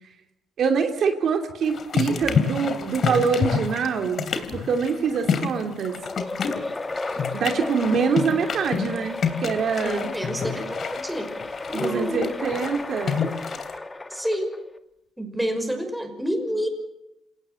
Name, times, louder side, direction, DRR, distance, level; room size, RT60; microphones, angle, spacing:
voice 1, 0.6-6.0 7.1-10.1 11.7-13.2, right 6 dB, 65° right, 4 dB, 2.8 m, -25 dB
sound 1, 1.6-13.8, left 6 dB, 55° left, 3.1 m, -29 dB
sound 2, 6.0-14.8, left 2 dB, 20° left, 1.6 m, -34 dB
voice 2, 9.8-11.3 11.7-12.3 14.1-14.6 15.2-16.7, equal, 5° right, 5 dB, 5.6 m, -28 dB
27.5 x 17.5 x 7.7 m, 0.90 s
cardioid pair, 90°, 0 cm